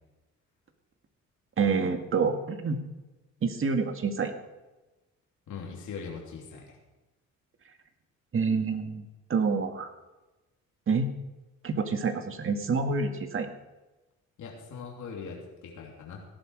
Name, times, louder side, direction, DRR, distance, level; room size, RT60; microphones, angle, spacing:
voice 1, 1.6-2.8 3.4-4.3 8.3-9.0 9.3-9.9 10.9-11.1 11.6-13.5, right 4 dB, 45° right, 6 dB, 1.9 m, -27 dB
voice 2, 5.5-6.8 14.4-16.2, left 5 dB, 75° left, -2 dB, 3.2 m, -41 dB
17.5 x 11.5 x 4.9 m, 1.1 s
cardioid pair, 90°, 30 cm